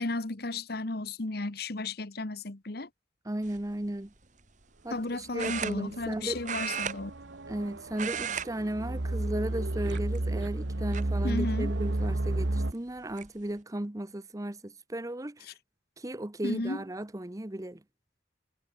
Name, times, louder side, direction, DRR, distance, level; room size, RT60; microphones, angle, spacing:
voice 1, 0.0-2.9 4.9-7.1 11.2-11.7 16.4-16.8, left 2 dB, 55° left, 1.4 m, -33 dB
voice 2, 3.2-4.1 4.8-6.5 7.5-15.5 16.0-17.8, right 1 dB, 20° right, 0.8 m, -35 dB
sound 1, 3.4-3.7 5.4-6.2 6.4-7.6 7.9-8.5 8.8-9.0 9.8-10.4 10.9-11.0 12.5-12.6 12.9-13.3, right 7 dB, 40° right, 2.0 m, -35 dB
sound 2, 5.5-12.7, right 2 dB, 70° right, 1.2 m, -32 dB
head